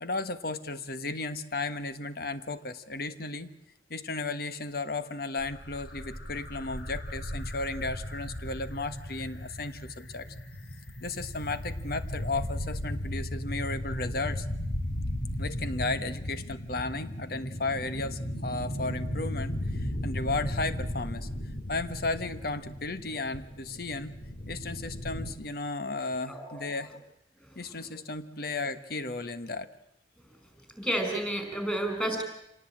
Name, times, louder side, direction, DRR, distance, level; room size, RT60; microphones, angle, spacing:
voice 1, 0.0-3.5 3.9-10.3 11.0-14.4 15.4-21.3 21.7-24.1 24.5-27.0 27.5-29.7, left 3 dB, 55° left, 11 dB, 1.4 m, -34 dB
sound 1, 5.4-25.3, equal, 70° left, 3.5 m, -36 dB
voice 2, 26.3-26.6 30.8-32.2, right 1 dB, 5° left, 5 dB, 5.1 m, -30 dB
26.5 x 18.0 x 8.9 m, 0.83 s
head